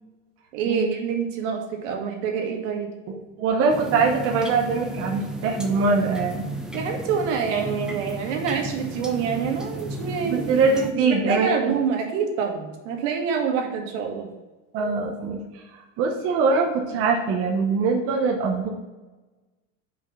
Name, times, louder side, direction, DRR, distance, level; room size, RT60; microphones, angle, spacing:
voice 1, 0.5-2.9 6.7-10.6 10.9-14.3, right 6 dB, 75° right, 2 dB, 1.6 m, -26 dB
voice 2, 3.1-6.5 9.4-9.5 10.2-11.8 14.7-15.6 16.0-18.7, right 4 dB, 40° right, 1 dB, 0.9 m, -23 dB
sound 1, 3.7-10.9, right 1 dB, ahead, 0.4 m, -34 dB
5.1 x 4.4 x 5.6 m, 1.2 s
supercardioid pair, 150°, 37 cm